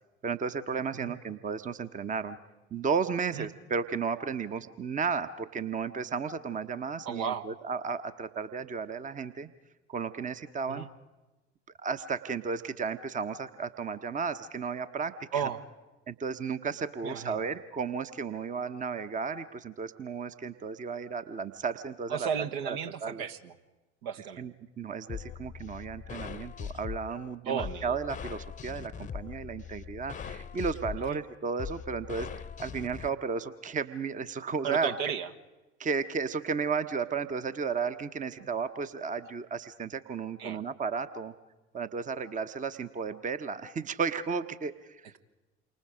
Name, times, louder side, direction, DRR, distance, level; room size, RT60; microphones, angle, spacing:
voice 1, 0.2-2.4 2.7-9.5 9.9-10.9 11.8-15.5 16.1-22.3 22.7-23.2 24.4-32.3 32.6-35.1 35.8-41.3 41.7-45.1, right 5 dB, 20° right, 11 dB, 1.0 m, -34 dB
voice 2, 7.0-7.5 10.7-10.9 15.3-15.6 17.0-17.4 22.1-23.5 24.0-24.5 27.4-28.0 31.1-31.2 34.6-35.3 38.4-38.5 40.4-40.6, right 7 dB, 60° right, 7 dB, 1.3 m, -34 dB
sound 1, 25.1-33.1, left 7 dB, 20° left, 0.8 m, -41 dB
28.5 x 25.0 x 5.0 m, 1.1 s
figure-of-eight pair, 65°, 34 cm